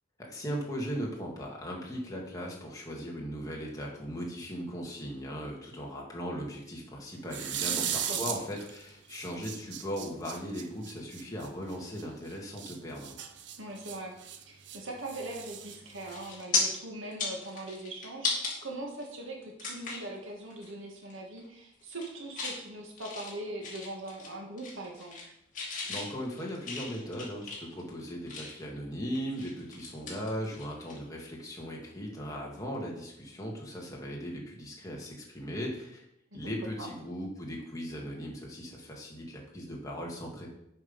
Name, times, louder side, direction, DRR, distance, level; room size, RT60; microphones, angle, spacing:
voice 1, 0.2-13.2 25.9-36.1 36.3-40.5, equal, 15° left, -2 dB, 1.8 m, -38 dB
sound 1, 7.2-8.8 9.1-12.0 12.6-14.8 15.1-16.4, right 9 dB, 65° right, 0.7 m, -37 dB
voice 2, 7.6-8.4 13.6-14.1 14.5-25.3 36.3-36.4 36.8-36.9, right 1 dB, 85° right, 1 dB, 1.9 m, -41 dB
sound 2, 15.5-15.7 16.1-16.6 17.0-18.5 19.0-19.1 19.6-20.1 20.5-20.7 21.0-21.5 21.8-22.6 23.0-24.3 24.6-25.3 25.5-28.7 29.1-31.0 31.3-31.5 33.3-33.5, left 4 dB, 40° left, 2.3 m, -36 dB
7.8 x 5.5 x 5.3 m, 0.78 s
head